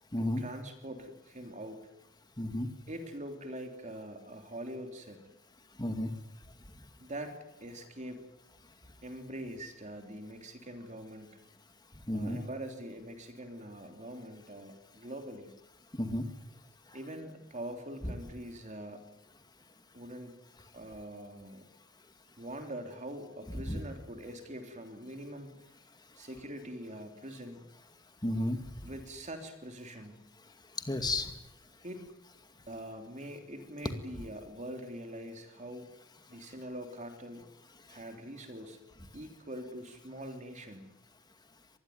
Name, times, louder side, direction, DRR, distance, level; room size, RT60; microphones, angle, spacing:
voice 1, 0.2-1.9 2.9-5.2 7.0-8.2 8.8-11.4 12.1-15.5 16.9-19.1 19.9-20.4 20.7-21.7 22.4-25.5 26.2-27.7 28.8-30.3 31.8-32.1 32.7-35.9 36.3-37.5 37.9-38.8 39.1-40.9, right 1 dB, 35° right, 5 dB, 3.4 m, -44 dB
voice 2, 2.4-2.7 5.8-6.1 12.1-12.4 15.9-16.2 23.7-23.8 28.2-28.6 30.9-31.3, left 1 dB, 20° left, 7 dB, 2.3 m, -32 dB
25.0 x 21.0 x 9.6 m, 0.85 s
head